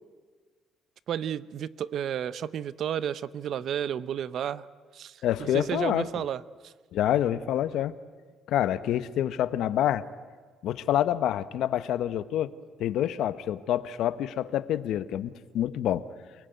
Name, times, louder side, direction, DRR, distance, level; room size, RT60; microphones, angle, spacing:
voice 1, 1.1-4.7 4.9-6.7, right 9 dB, 60° right, 17 dB, 0.7 m, -32 dB
voice 2, 5.2-6.1 6.9-7.9 8.5-10.0 10.6-12.5 12.8-16.1, left 11 dB, 75° left, 14 dB, 1.0 m, -27 dB
28.5 x 19.0 x 9.2 m, 1.5 s
cardioid pair, 120°, 0 cm